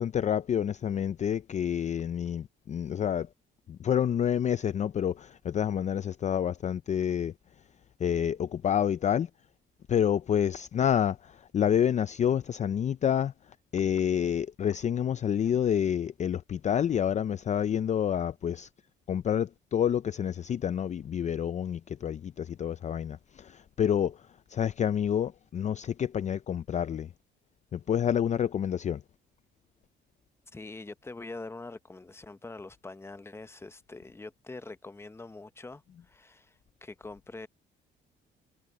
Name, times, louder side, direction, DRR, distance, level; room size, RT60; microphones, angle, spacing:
voice 1, 0.0-3.3 3.7-7.3 8.0-9.3 9.9-13.3 13.7-18.7 19.1-24.2 24.5-27.1 27.7-29.0, left 9 dB, 35° left, 0.4 m, -28 dB
voice 2, 30.5-37.5, left 3 dB, 10° left, 0.8 m, -44 dB
cardioid pair, 110°, 20 cm